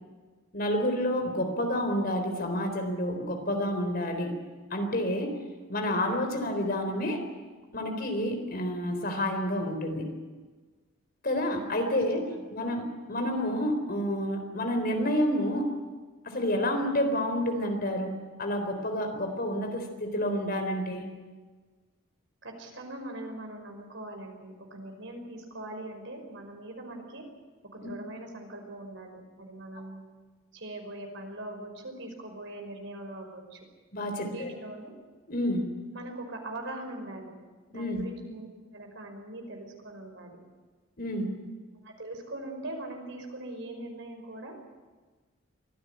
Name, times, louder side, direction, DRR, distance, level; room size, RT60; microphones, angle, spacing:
voice 1, 0.5-4.4 4.7-5.4 5.7-7.3 7.7-10.2 11.2-15.8 16.2-21.1 27.8-27.9 33.9-34.5 35.3-35.7 37.7-38.0 41.0-41.3, left 1 dB, 45° left, 5 dB, 4.0 m, -29 dB
voice 2, 22.4-27.2 27.7-30.0 30.5-33.6 34.1-34.9 35.9-37.3 37.7-40.4 41.8-44.5, right 1 dB, 65° right, 4 dB, 5.3 m, -41 dB
24.0 x 16.0 x 9.7 m, 1.4 s
head